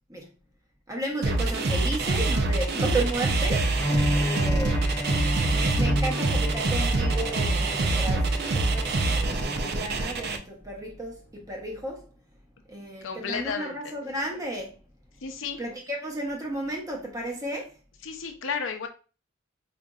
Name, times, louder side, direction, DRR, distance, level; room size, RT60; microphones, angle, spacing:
voice 1, 0.9-3.7 4.1-4.9 5.5-12.1 12.7-14.8 15.6-17.7, right 1 dB, 15° right, 0.9 m, -33 dB
sound 1, 1.2-10.4, right 2 dB, 55° right, 0.5 m, -25 dB
Bowed string instrument, 3.8-9.8, equal, 10° left, 0.3 m, -32 dB
voice 2, 13.0-13.9 15.2-15.6 18.0-18.9, left 5 dB, 75° left, 0.6 m, -33 dB
5.0 x 2.6 x 2.3 m
head